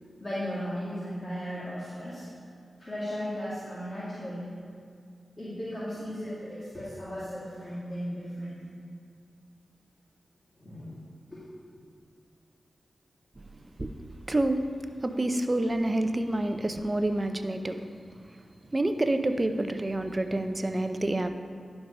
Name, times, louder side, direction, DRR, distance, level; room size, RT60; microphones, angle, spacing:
voice 1, 0.2-2.3 2.8-4.5 5.4-8.8 10.6-10.9 11.3-11.4, equal, 35° left, -10 dB, 2.3 m, -36 dB
voice 2, 14.3-14.6 15.0-17.8 18.7-21.3, right 1 dB, 30° right, 7 dB, 0.6 m, -28 dB
11.0 x 4.7 x 5.4 m, 2.4 s
cardioid pair, 45°, 0 cm